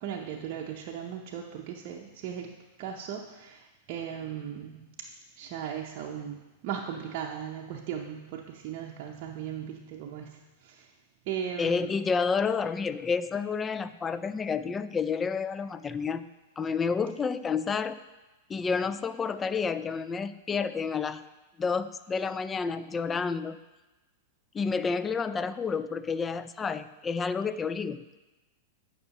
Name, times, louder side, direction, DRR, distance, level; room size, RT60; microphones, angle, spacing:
voice 1, 0.0-2.5 2.8-4.9 5.4-10.9 11.3-11.9, right 8 dB, 50° right, -1 dB, 0.6 m, -37 dB
voice 2, 11.6-16.2 16.6-18.0 18.5-21.2 21.6-23.6 24.5-28.0, left 5 dB, 20° left, 13 dB, 0.3 m, -30 dB
9.4 x 5.5 x 2.9 m, 1.1 s
hypercardioid pair, 110°, 0 cm